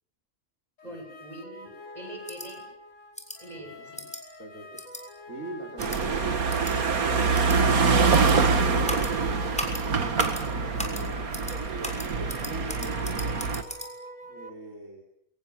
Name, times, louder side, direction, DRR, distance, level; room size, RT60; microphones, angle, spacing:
sound 1, 0.8-14.5, left 1 dB, 60° left, 2.6 m, -46 dB
voice 1, 0.8-2.7 3.4-4.1, right 1 dB, 25° right, 4 dB, 8.3 m, -43 dB
sound 2, 2.3-2.5 3.2-3.4 4.0-4.2 4.8-5.0 5.8-6.0 6.5-6.7 7.3-7.6 8.1-8.4 8.9-9.1 9.6-9.8 10.2-10.4 10.8-11.0 11.3-11.6 11.8-13.9, equal, 5° left, 6.6 m, -36 dB
voice 2, 3.5-3.9 4.4-4.8 5.3-7.5 7.9-11.3 11.7-13.5 14.2-15.0, right 2 dB, 65° right, -1 dB, 5.2 m, -42 dB
sound 3, 5.8-13.6, right 4 dB, 90° right, 2.3 m, -25 dB
28.5 x 25.5 x 7.5 m, 0.72 s
omnidirectional pair, 1.5 m